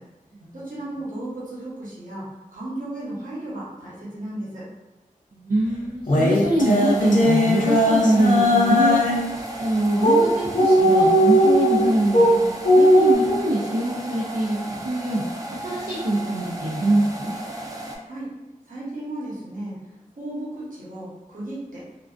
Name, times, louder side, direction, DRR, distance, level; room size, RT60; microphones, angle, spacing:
voice 1, 0.5-2.2 2.5-4.6 18.0-18.3 18.7-19.8 20.2-21.8, right 1 dB, 65° right, -7 dB, 0.9 m, -34 dB
voice 2, 5.3-9.0 9.6-12.4 12.7-15.2 15.6-17.3, right 1 dB, 90° right, -8 dB, 0.4 m, -23 dB
sound 1, 6.1-9.3 10.0-10.2 10.5-12.3 12.6-13.1, equal, 65° left, 0.5 m, -17 dB
sound 2, 6.6-18.0, right 1 dB, 25° right, 0.4 m, -35 dB
2.3 x 2.3 x 2.3 m, 1.1 s
wide cardioid pair, 45°, 14 cm